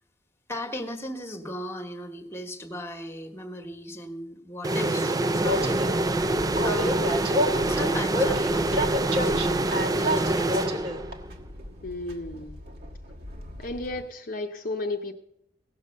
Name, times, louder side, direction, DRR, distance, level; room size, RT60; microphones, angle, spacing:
voice 1, 0.5-6.1 6.6-7.4 7.6-10.8, equal, 15° left, 5 dB, 1.3 m, -37 dB
sound 1, 4.6-11.3, right 2 dB, 20° right, 0.4 m, -26 dB
Train, 5.4-14.0, equal, 60° right, 1.4 m, -31 dB
voice 2, 11.8-12.6 13.6-15.1, left 2 dB, 50° left, 3 dB, 0.7 m, -33 dB
16.5 x 6.7 x 6.5 m, 0.80 s
head